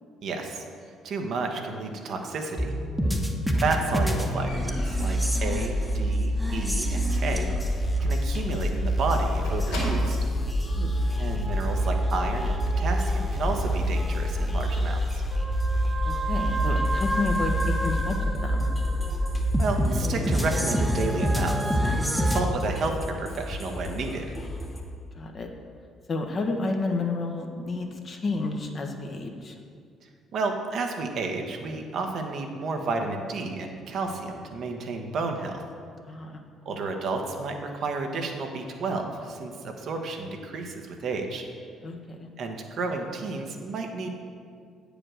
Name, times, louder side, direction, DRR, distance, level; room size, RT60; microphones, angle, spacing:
voice 1, 0.2-0.6 1.0-2.7 3.6-7.7 8.0-10.2 11.2-15.0 19.6-24.2 30.3-35.6 36.6-41.4 42.4-44.1, right 3 dB, 55° right, 3 dB, 1.0 m, -31 dB
sound 1, 2.6-22.4, equal, 5° right, 1.1 m, -26 dB
Squeak, 3.5-6.3 6.6-7.0 7.3-7.4 7.8-7.9 8.1-8.3 8.5-10.4 11.2-11.3, left 1 dB, 75° left, 2.3 m, -39 dB
sound 2, 7.0-24.8, left 1 dB, 25° left, 1.5 m, -37 dB
voice 2, 10.6-11.2 16.0-18.7 25.1-25.5 26.1-29.5 36.0-36.4 41.8-42.3, left 3 dB, 45° left, 3 dB, 1.1 m, -31 dB
8.7 x 5.1 x 6.3 m, 2.2 s
figure-of-eight pair, 45°, 0 cm